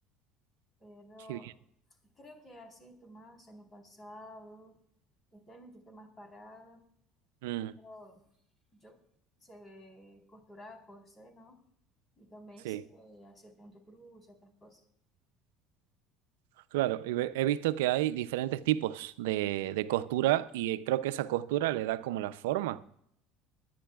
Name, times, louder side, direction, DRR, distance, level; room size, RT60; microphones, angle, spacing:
voice 1, 0.8-1.5 2.1-4.8 5.3-6.8 7.8-8.3 8.7-9.0 9.4-11.6 12.2-14.8, equal, 30° left, 4.0 m, -52 dB
voice 2, 7.4-7.8 12.6-12.8 16.7-22.8, right 14 dB, 85° right, 0.5 m, -30 dB
23.0 x 10.5 x 2.4 m
hypercardioid pair, 80°, 0 cm